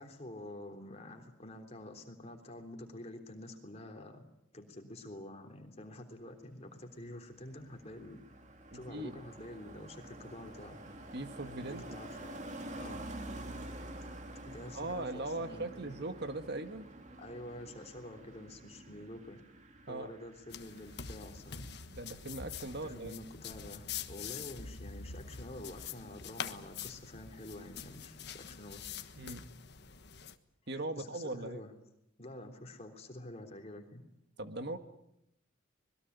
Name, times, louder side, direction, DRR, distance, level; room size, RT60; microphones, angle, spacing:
voice 1, 0.0-4.2 4.5-8.2 8.7-10.8 11.7-12.4 12.8-13.0 14.0-14.1 14.5-15.9 17.2-19.4 19.9-21.7 22.7-28.9 30.9-31.7 32.2-34.0, left 1 dB, 30° left, 4 dB, 3.5 m, -48 dB
Car passing by, 6.9-21.7 22.0-22.3, right 1 dB, 35° right, 2.5 m, -48 dB
voice 2, 8.7-9.1 11.1-11.8 14.7-16.9 19.9-20.1 22.0-23.1 29.2-29.5 30.7-31.6 34.4-34.8, right 2 dB, 55° right, 8 dB, 1.8 m, -39 dB
sound 1, 20.5-30.4, left 7 dB, 55° left, 1.4 m, -45 dB
25.5 x 21.5 x 8.2 m, 0.80 s
head